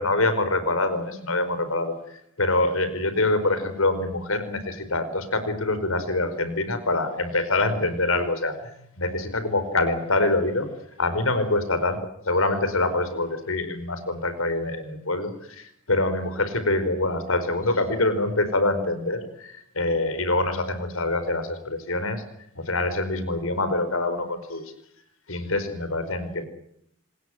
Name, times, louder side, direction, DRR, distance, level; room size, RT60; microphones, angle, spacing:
voice 1, 0.0-10.7 11.0-12.0 12.3-22.2 22.5-24.6 25.3-26.5, left 2 dB, 85° left, 11 dB, 5.0 m, -25 dB
27.0 x 20.5 x 7.9 m, 0.72 s
head